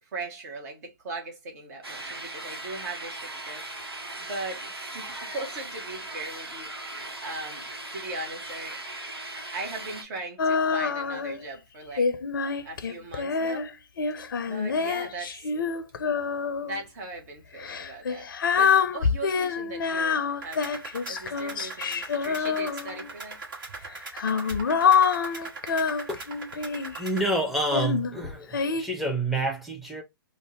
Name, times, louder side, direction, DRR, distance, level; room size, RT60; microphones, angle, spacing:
voice 1, 0.0-3.6 4.2-7.7 7.9-8.8 9.5-12.1 12.6-13.7 14.4-15.5 16.6-20.7 21.1-23.4, right 2 dB, 45° right, 0.8 m, -39 dB
sound 1, 1.8-10.0, right 2 dB, 85° right, 0.9 m, -38 dB
Female singing, 10.4-11.4 12.0-16.8 17.6-23.1 23.9-27.0 27.7-28.8, left 6 dB, 60° left, 0.5 m, -26 dB
sound 2, 20.4-27.3, right 3 dB, 60° right, 1.2 m, -41 dB
voice 2, 27.0-30.0, right 2 dB, ahead, 0.6 m, -28 dB
2.5 x 2.0 x 3.5 m
figure-of-eight pair, 120°, 13 cm